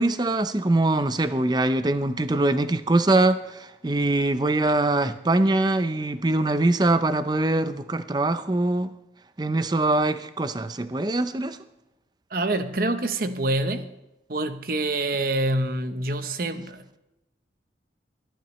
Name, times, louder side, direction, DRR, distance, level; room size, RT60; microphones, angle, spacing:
voice 1, 0.0-8.9 9.4-11.6, right 2 dB, 25° right, 0.5 m, -23 dB
voice 2, 12.3-13.9 14.3-17.0, right 2 dB, 50° right, 0.9 m, -26 dB
22.0 x 10.5 x 3.2 m
head